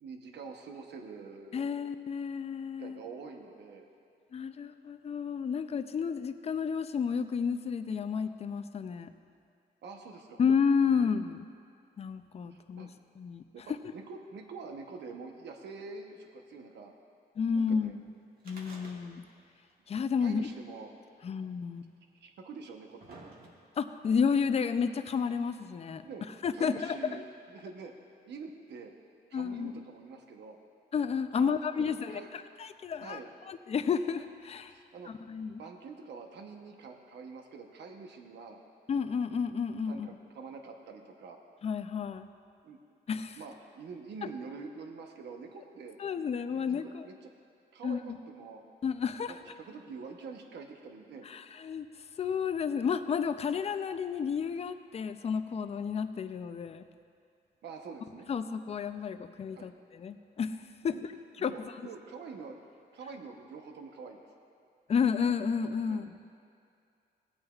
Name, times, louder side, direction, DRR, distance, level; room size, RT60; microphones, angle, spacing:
voice 1, 0.0-1.7 2.8-3.8 9.8-10.4 10.8-11.1 12.5-12.9 13.5-16.9 17.5-18.0 20.2-20.9 22.2-23.2 26.0-26.3 26.5-27.2 27.5-27.9 28.3-28.9 29.3-30.6 31.3-32.3 33.0-33.3 34.7-35.1 35.6-38.6 39.9-41.4 42.6-42.8 43.3-46.0 46.5-47.3 47.7-48.6 49.3-51.3 57.6-58.3 59.5-59.7 60.8-61.0 61.4-62.6 62.9-64.2 65.9-66.1, right 4 dB, 85° right, 3 dB, 0.9 m, -46 dB
voice 2, 1.5-3.0 4.3-9.1 10.4-11.4 12.0-12.9 13.2-13.4 13.7-13.8 17.4-18.0 18.5-19.2 19.9-20.5 21.2-21.8 23.8-26.1 26.4-27.2 29.3-29.7 30.9-32.2 32.6-33.2 33.5-34.7 35.1-35.6 38.9-40.1 41.6-42.3 43.1-43.4 46.0-47.1 47.8-48.2 48.8-49.3 51.3-51.9 52.2-56.8 58.3-60.6 60.8-61.0 61.4-61.5 64.9-66.1, left 6 dB, 35° left, 11 dB, 0.4 m, -31 dB
sound 1, 18.4-19.4 19.7-19.8 20.8-20.9 21.8-21.9 22.5-23.9 24.7-24.8, right 2 dB, 60° right, 1.3 m, -51 dB
17.0 x 8.7 x 2.4 m, 2.4 s
cardioid pair, 110°, 17 cm